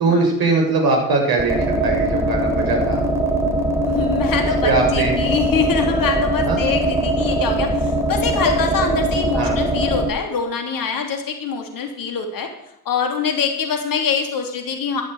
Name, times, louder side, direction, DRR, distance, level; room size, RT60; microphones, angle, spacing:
voice 1, 0.0-3.0 4.6-5.2 6.4-6.6 9.3-9.6, right 3 dB, 50° right, 1 dB, 6.4 m, -20 dB
sound 1, 1.4-10.1, right 1 dB, 5° right, 3.9 m, -21 dB
voice 2, 3.8-12.5 12.8-15.0, left 6 dB, 45° left, 4 dB, 3.2 m, -24 dB
14.5 x 12.5 x 4.9 m, 0.81 s
figure-of-eight pair, 55°, 46 cm